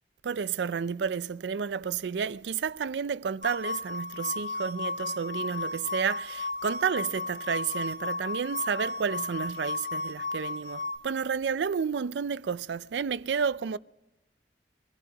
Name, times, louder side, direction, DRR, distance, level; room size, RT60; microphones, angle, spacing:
voice 1, 0.2-13.8, right 6 dB, 70° right, 0.4 m, -31 dB
sound 1, 3.4-11.0, left 3 dB, 45° right, 1.4 m, -34 dB
23.0 x 15.5 x 2.9 m
head